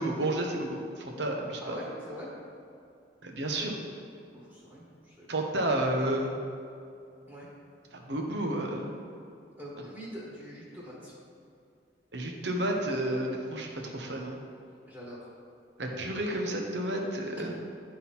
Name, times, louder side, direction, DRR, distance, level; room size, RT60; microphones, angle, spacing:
voice 1, 0.0-1.8 3.2-3.8 5.3-6.4 7.9-9.0 12.1-14.4 15.8-17.6, right 1 dB, 75° right, 1 dB, 1.0 m, -31 dB
voice 2, 1.6-2.3 4.3-5.3 7.3-7.5 9.6-11.1 14.9-15.3, equal, 15° right, -7 dB, 1.3 m, -43 dB
11.0 x 3.8 x 4.3 m, 2.5 s
head